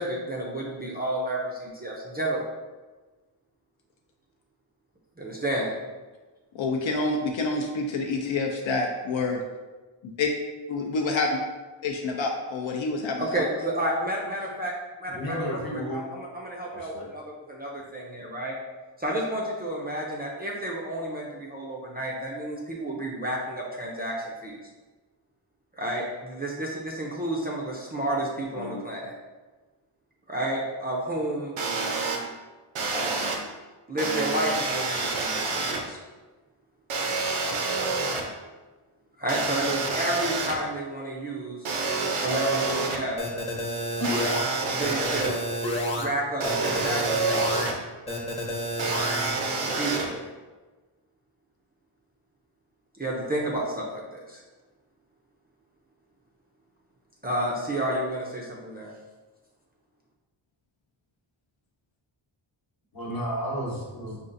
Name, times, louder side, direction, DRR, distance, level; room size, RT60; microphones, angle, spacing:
voice 1, 0.0-2.5 5.2-5.7 13.2-14.7 15.0-18.6 19.0-24.6 25.8-29.1 30.3-31.5 32.9-33.1 33.9-36.0 39.2-41.7 42.2-43.2 44.7-45.4 45.9-47.4 49.6-50.2 53.0-54.4 57.2-58.9, right 1 dB, 20° right, -3 dB, 0.4 m, -31 dB
voice 2, 6.5-9.4 10.0-10.3 10.7-11.3 11.8-13.4 28.6-28.8, left 3 dB, 70° left, 1 dB, 0.5 m, -28 dB
voice 3, 15.1-16.0 16.7-17.1 62.9-64.2, equal, 45° left, -3 dB, 1.0 m, -32 dB
sound 1, 31.6-32.2 32.7-33.4 34.0-35.8 36.9-38.2 39.3-40.6 41.6-43.0 44.0-45.3 46.4-47.7 48.8-50.1, right 3 dB, 80° right, 0.7 m, -28 dB
sound 2, 43.2-44.4 44.8-46.0 46.4-47.7 48.1-49.3, left 1 dB, 15° left, 0.7 m, -29 dB
5.1 x 2.4 x 2.5 m, 1.2 s
wide cardioid pair, 130°, 49 cm